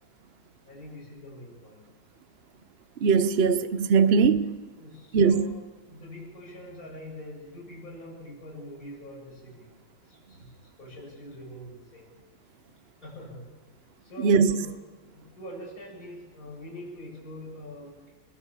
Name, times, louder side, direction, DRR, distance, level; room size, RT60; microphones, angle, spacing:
voice 1, 0.7-1.9 4.0-4.2 4.8-5.6 5.9-9.7 10.0-12.1 13.0-13.5 14.0-18.1, left 1 dB, 40° left, 8.2 m, -44 dB
voice 2, 3.0-4.5 5.1-5.5 14.2-14.6, right 5 dB, 55° right, 0.7 m, -20 dB
23.0 x 21.0 x 7.4 m
omnidirectional pair, 2.3 m